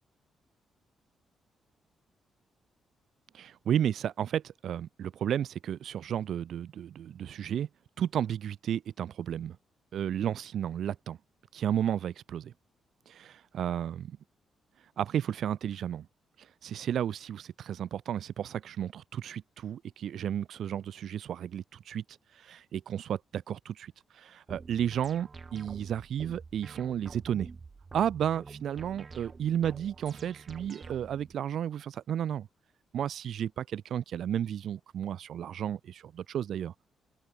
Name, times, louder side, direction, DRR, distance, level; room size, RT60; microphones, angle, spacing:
voice 1, 3.3-7.7 8.0-9.6 9.9-11.2 11.5-12.5 13.1-14.2 15.0-16.1 16.4-22.0 22.3-27.5 27.9-32.5 32.9-36.7, right 9 dB, 55° right, 2.4 m, -33 dB
sound 1, 24.5-31.3, right 4 dB, 25° right, 5.5 m, -47 dB
open air
wide cardioid pair, 180°, 0 cm